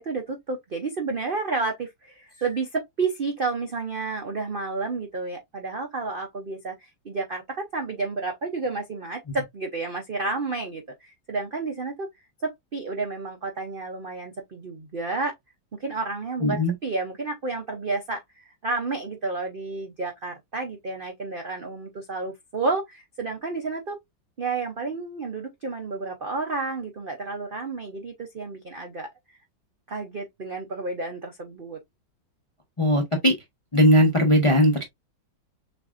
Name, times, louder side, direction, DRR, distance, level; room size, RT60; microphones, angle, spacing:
voice 1, 0.0-12.1 12.4-15.3 15.8-24.0 24.4-29.1 29.9-31.8, right 3 dB, 75° right, 0.4 m, -31 dB
voice 2, 16.4-16.7 32.8-33.3 33.7-34.8, equal, 35° left, 0.5 m, -19 dB
6.6 x 2.6 x 2.5 m
omnidirectional pair, 2.1 m